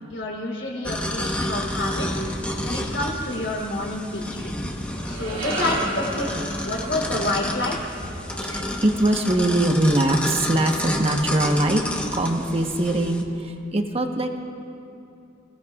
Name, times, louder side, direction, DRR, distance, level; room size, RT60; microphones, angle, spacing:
voice 1, 0.1-2.1 2.6-4.5 5.1-7.9, left 1 dB, 75° left, -2 dB, 3.5 m, -28 dB
sound 1, 0.8-13.2, left 1 dB, 5° left, 1.1 m, -30 dB
sound 2, 4.8-9.3, right 1 dB, 80° right, 2.4 m, -34 dB
voice 2, 8.2-11.8 12.1-14.4, right 1 dB, 35° right, 3 dB, 1.1 m, -22 dB
26.0 x 17.5 x 2.4 m, 2.6 s
head